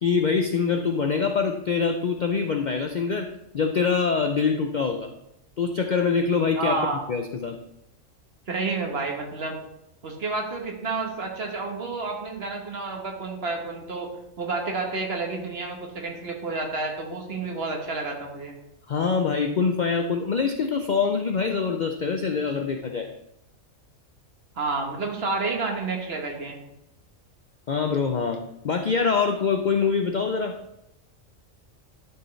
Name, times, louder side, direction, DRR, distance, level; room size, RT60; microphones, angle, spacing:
voice 1, 0.0-3.3 3.5-5.1 5.6-6.8 7.1-7.6 18.9-23.1 27.7-28.4 28.6-30.6, left 5 dB, 60° left, 5 dB, 0.5 m, -24 dB
voice 2, 6.6-7.0 8.5-9.6 10.0-14.1 14.4-18.5 24.5-26.6, right 3 dB, 50° right, 2 dB, 1.4 m, -30 dB
12.0 x 4.7 x 3.2 m, 0.85 s
omnidirectional pair, 1.3 m